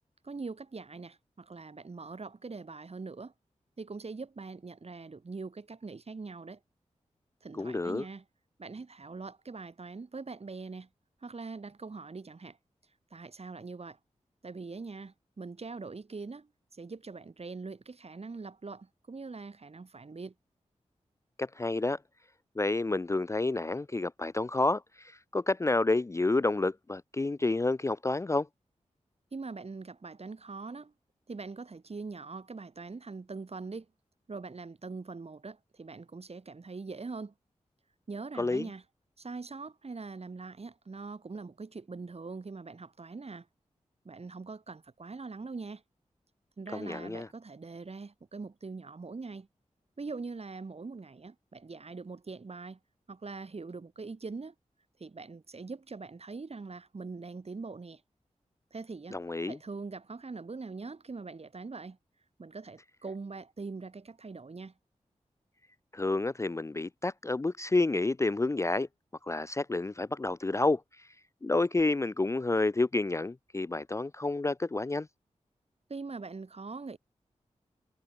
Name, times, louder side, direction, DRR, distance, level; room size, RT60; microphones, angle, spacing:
voice 1, 0.2-3.3 3.8-6.6 7.4-8.2 8.6-10.9 11.2-12.6 13.1-14.0 14.4-20.3 29.3-30.9 31.3-33.9 34.3-37.3 38.1-38.8 39.2-43.5 44.0-45.8 46.6-49.5 50.0-52.8 53.1-54.5 55.0-58.0 58.7-59.2 59.5-62.0 62.4-64.7 75.9-77.0, right 4 dB, 55° right, 2.8 m, -42 dB
voice 2, 7.6-8.0 21.4-22.0 22.6-28.5 38.4-38.7 46.7-47.3 59.1-59.6 65.9-68.9 69.2-70.8 71.4-75.1, left 2 dB, 25° left, 0.4 m, -29 dB
cardioid pair, 45°, 13 cm